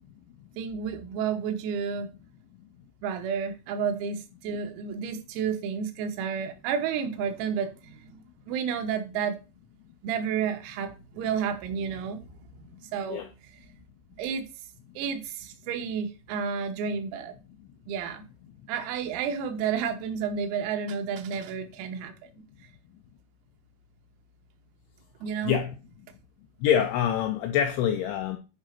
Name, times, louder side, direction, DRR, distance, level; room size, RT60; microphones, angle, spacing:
voice 1, 0.6-2.1 3.0-9.4 10.0-12.3 12.6-13.6 14.2-14.5 15.0-17.3 17.9-18.2 18.7-22.3 25.2-25.6, right 7 dB, 90° right, 3.7 m, -31 dB
voice 2, 26.6-28.4, left 9 dB, 90° left, 2.6 m, -25 dB
9.4 x 4.9 x 4.4 m
omnidirectional pair, 6.0 m